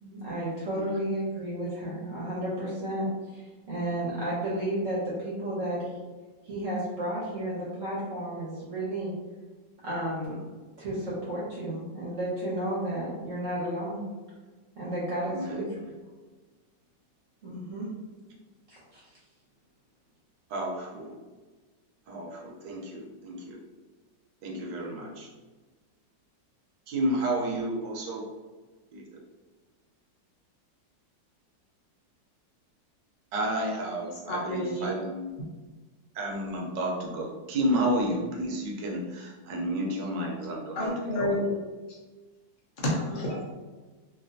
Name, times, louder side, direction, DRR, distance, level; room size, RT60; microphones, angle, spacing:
voice 1, 0.0-5.9 6.4-9.1 9.8-10.4 10.8-14.0 14.8-15.8 17.4-17.9 18.7-19.0, right 1 dB, 55° right, -7 dB, 1.0 m, -32 dB
voice 2, 15.2-15.6 20.5-21.2 22.1-23.6 24.4-25.3 26.9-28.3 28.9-29.0 33.3-35.3 36.1-41.4, right 1 dB, 80° right, -1 dB, 1.3 m, -31 dB
voice 3, 34.3-34.9 40.7-41.6 41.9-42.0 42.8-43.6, left 1 dB, 65° left, -4 dB, 0.5 m, -29 dB
3.2 x 2.5 x 2.6 m, 1.3 s
omnidirectional pair, 1.9 m